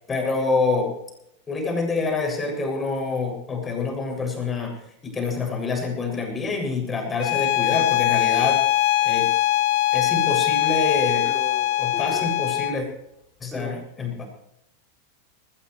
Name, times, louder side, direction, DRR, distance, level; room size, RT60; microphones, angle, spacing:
voice 1, 0.1-0.9 1.5-4.7 5.0-8.6 9.0-9.3 9.9-11.3 11.8-12.9 13.4-14.2, left 3 dB, 20° left, 1 dB, 7.5 m, -26 dB
Bowed string instrument, 7.2-12.8, left 14 dB, 50° left, 1.1 m, -22 dB
voice 2, 11.2-12.3 13.5-13.8, right 1 dB, 5° right, -3 dB, 5.1 m, -38 dB
21.0 x 20.5 x 3.4 m, 0.81 s
figure-of-eight pair, 90°, 0 cm